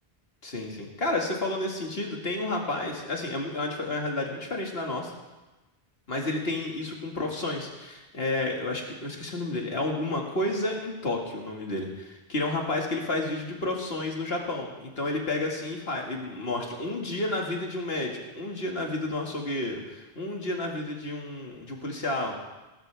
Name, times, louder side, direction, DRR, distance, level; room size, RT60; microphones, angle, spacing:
voice 1, 0.4-5.1 6.1-22.3, left 2 dB, 75° left, 0 dB, 2.3 m, -31 dB
19.5 x 12.5 x 3.5 m, 1.1 s
omnidirectional pair, 1.0 m